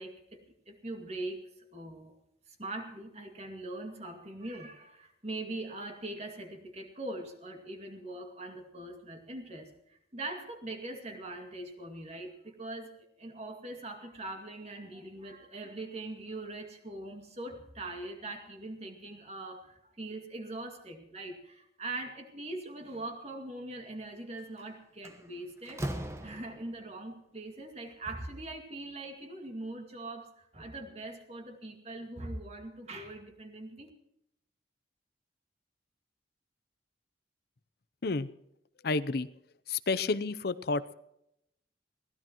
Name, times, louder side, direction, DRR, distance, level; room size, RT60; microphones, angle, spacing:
voice 1, 0.0-2.1 2.5-25.8 26.2-33.9, right 2 dB, 35° right, 5 dB, 2.3 m, -42 dB
Slam, 24.4-24.6 25.0-26.9, right 1 dB, 15° right, 1.1 m, -39 dB
voice 2, 38.8-39.3 39.7-41.0, left 3 dB, 55° left, 14 dB, 0.6 m, -30 dB
23.0 x 17.0 x 3.1 m, 0.79 s
head